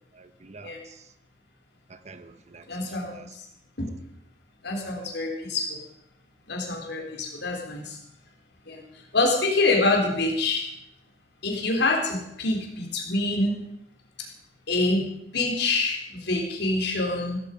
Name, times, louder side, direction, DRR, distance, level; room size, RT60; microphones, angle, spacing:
voice 1, 0.1-1.1 1.9-3.3 7.0-7.2, right 4 dB, 40° right, 0.9 m, -48 dB
voice 2, 2.7-3.4 3.8-3.9 4.6-5.8 6.5-8.0 8.6-8.8 9.1-10.7 11.4-13.7 14.2-14.3 14.7-17.4, left 2 dB, 65° left, 3.7 m, -26 dB
16.5 x 13.5 x 5.2 m
head